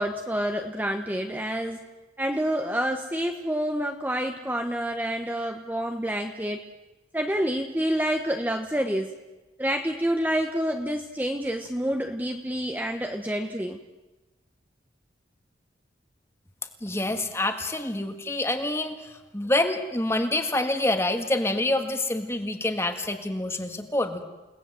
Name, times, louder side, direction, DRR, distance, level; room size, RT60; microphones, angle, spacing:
voice 1, 0.0-1.8 2.2-6.6 7.1-9.1 9.6-13.8, equal, 10° right, 4 dB, 1.1 m, -28 dB
voice 2, 16.8-24.2, left 1 dB, 15° left, 7 dB, 1.7 m, -27 dB
29.5 x 19.0 x 7.7 m, 1.1 s
head